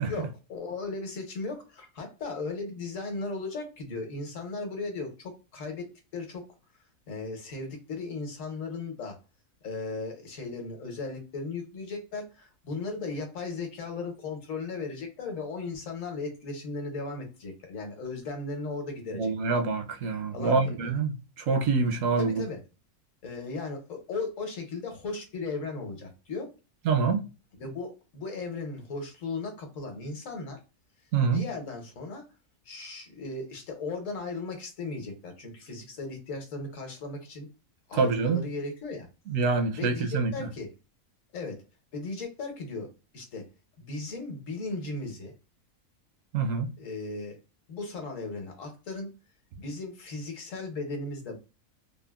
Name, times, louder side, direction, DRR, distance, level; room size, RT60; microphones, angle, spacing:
voice 1, 0.1-6.5 7.1-9.2 9.6-19.3 20.3-20.9 22.2-22.6 23.2-26.5 27.6-30.6 31.3-32.2 32.6-37.5 37.9-39.1 39.7-40.7 41.3-41.6 41.9-43.5 43.8-45.3 46.8-47.4 47.7-49.1 49.6-51.4, left 3 dB, 70° left, 1.2 m, -36 dB
voice 2, 19.1-22.4 26.9-27.3 31.1-31.4 37.9-38.4 39.3-40.3 46.3-46.7, right 4 dB, 75° right, 0.9 m, -26 dB
3.5 x 2.0 x 2.2 m
omnidirectional pair, 1.4 m